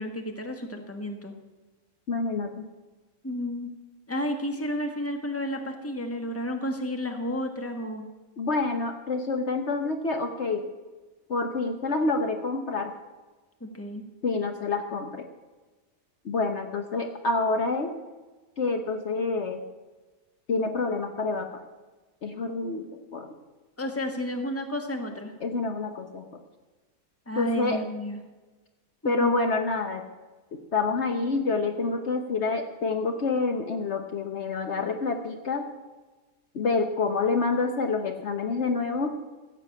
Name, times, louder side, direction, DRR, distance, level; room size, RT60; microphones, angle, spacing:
voice 1, 0.0-1.3 3.2-3.7 4.1-8.1 13.6-14.0 23.8-25.3 27.3-28.2 29.0-29.4, equal, 10° left, 4 dB, 1.5 m, -31 dB
voice 2, 2.1-2.7 8.4-10.7 11.3-12.9 14.2-15.2 16.2-17.9 18.6-19.6 20.5-21.6 22.2-23.3 25.4-26.3 27.4-27.8 29.0-30.1 30.7-35.6 36.5-39.3, left 3 dB, 55° left, 5 dB, 1.2 m, -27 dB
15.0 x 7.5 x 8.4 m, 1.2 s
omnidirectional pair, 1.4 m